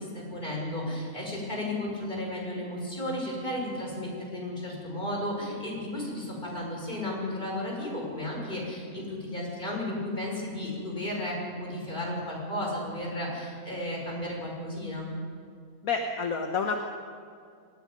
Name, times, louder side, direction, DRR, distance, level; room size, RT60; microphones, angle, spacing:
voice 1, 0.0-15.1, left 1 dB, 30° left, -2 dB, 6.4 m, -34 dB
voice 2, 15.8-16.8, left 5 dB, 70° left, 3 dB, 1.6 m, -29 dB
27.0 x 19.0 x 5.3 m, 2.3 s
omnidirectional pair, 1.6 m